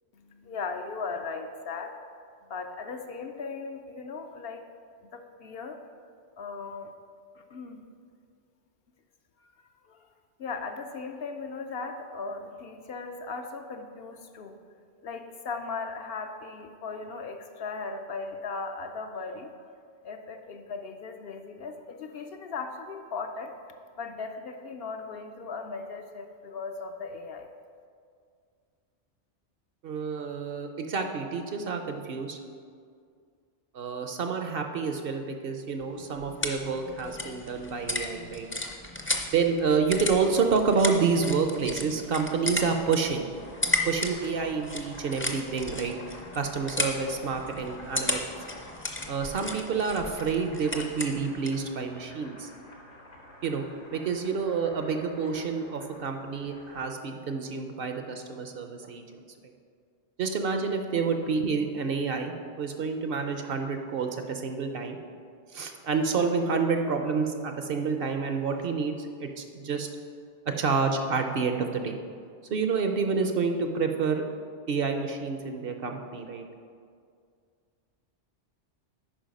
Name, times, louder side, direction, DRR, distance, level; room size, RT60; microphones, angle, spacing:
voice 1, 0.1-1.9 2.5-4.7 5.1-5.8 6.4-6.9 7.5-7.8 9.9-10.0 10.4-14.6 15.0-19.5 20.0-27.5, left 4 dB, 65° left, 5 dB, 0.7 m, -37 dB
voice 2, 29.8-32.4 33.7-38.5 39.3-43.3 43.8-45.9 46.3-48.2 49.1-52.5 53.4-53.6 53.9-59.2 60.2-65.0 65.5-69.9 70.5-72.0 72.5-74.2 74.7-76.4, right 5 dB, 60° right, 5 dB, 0.8 m, -28 dB
sound 1, 35.8-51.7, left 1 dB, 15° left, 0.5 m, -35 dB
Boiling, 43.2-56.9, left 1 dB, 80° left, 1.9 m, -49 dB
8.8 x 5.5 x 5.2 m, 2.2 s
omnidirectional pair, 1.2 m